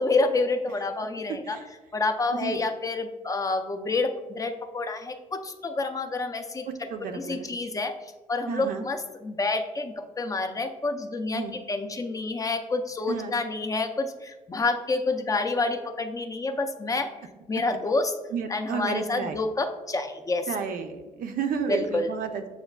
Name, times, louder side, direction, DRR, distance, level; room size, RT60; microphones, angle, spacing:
voice 1, 0.0-1.6 1.9-6.7 7.1-7.9 8.3-17.1 17.5-18.1 18.5-20.5 21.7-22.1, left 3 dB, 25° left, 6 dB, 0.4 m, -28 dB
voice 2, 1.3-1.6 2.3-2.6 6.6-7.5 8.5-8.9 11.3-11.5 13.1-13.4 18.3-19.4 20.5-22.5, right 6 dB, 75° right, 6 dB, 0.5 m, -32 dB
7.0 x 2.4 x 2.2 m, 1.2 s
cardioid pair, 105°, 15 cm